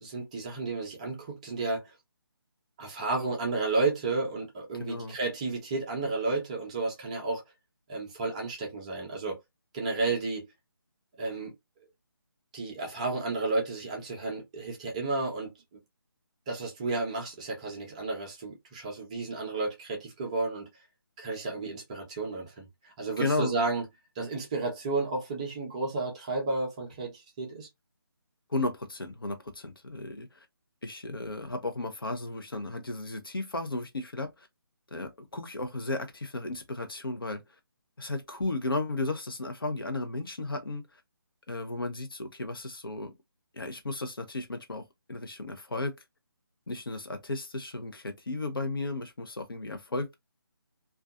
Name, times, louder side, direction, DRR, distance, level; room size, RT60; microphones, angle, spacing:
voice 1, 0.0-1.8 2.8-7.4 7.9-9.4 9.7-10.5 11.2-11.5 12.5-15.5 16.5-20.7 21.2-23.8 24.2-27.7, right 3 dB, 15° right, 0.6 m, -32 dB
voice 2, 4.8-5.2 23.2-23.6 28.5-30.5 30.8-34.5 34.9-37.4 38.0-40.8 41.5-43.1 43.5-46.0 46.7-50.1, left 2 dB, 70° left, 0.7 m, -34 dB
2.5 x 2.3 x 2.3 m
figure-of-eight pair, 150°, 12 cm